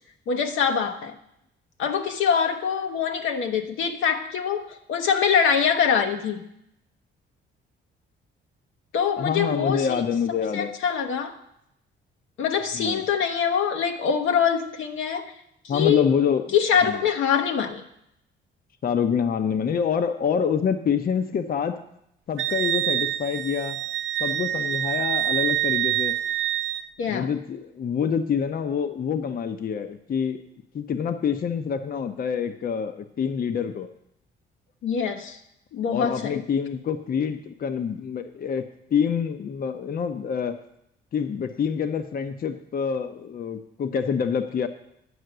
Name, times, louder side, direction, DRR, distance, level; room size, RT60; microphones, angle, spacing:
voice 1, 0.3-1.1 1.8-6.5 8.9-10.1 10.5-11.3 12.4-15.3 15.6-16.0 16.5-17.8 27.0-27.3 34.8-35.4 35.7-36.4, left 7 dB, 85° left, 4 dB, 1.0 m, -24 dB
voice 2, 9.2-10.7 12.7-13.1 15.7-16.5 16.9-17.0 18.8-21.8 22.3-23.8 24.2-26.2 27.1-30.4 30.7-33.9 35.9-38.6 38.9-40.6 41.1-44.7, left 7 dB, 45° left, 8 dB, 0.7 m, -26 dB
Wind instrument woodwind instrument, 22.4-26.9, right 12 dB, 75° right, 0.6 m, -26 dB
9.6 x 5.7 x 7.7 m, 0.77 s
cardioid pair, 90°, 20 cm